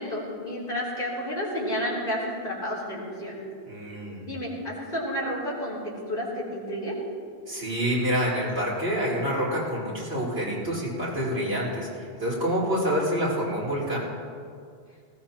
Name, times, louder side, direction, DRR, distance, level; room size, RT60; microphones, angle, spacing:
voice 1, 0.0-3.4 4.2-5.8 6.1-6.9, equal, 55° left, -5 dB, 4.1 m, -31 dB
voice 2, 3.7-4.3 7.5-14.0, equal, 85° right, -7 dB, 4.7 m, -27 dB
19.0 x 17.5 x 2.9 m, 2.2 s
omnidirectional pair, 1.1 m